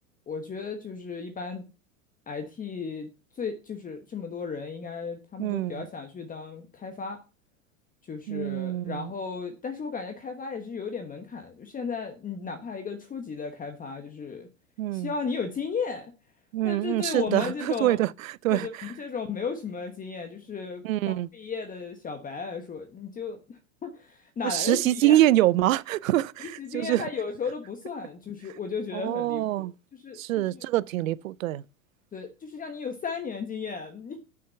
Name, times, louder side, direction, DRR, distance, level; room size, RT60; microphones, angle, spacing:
voice 1, 0.3-1.7 2.3-3.1 3.3-7.2 8.1-14.5 14.9-16.1 16.6-18.0 18.5-25.2 26.6-29.7 30.0-30.5 32.1-34.2, left 5 dB, 20° left, 1.2 m, -35 dB
voice 2, 5.4-5.9 8.3-9.1 14.8-15.1 16.5-18.7 20.8-21.3 24.4-27.1 28.9-29.7 30.2-31.6, right 15 dB, 75° right, 0.6 m, -25 dB
6.4 x 5.7 x 6.8 m
hypercardioid pair, 95°, 40 cm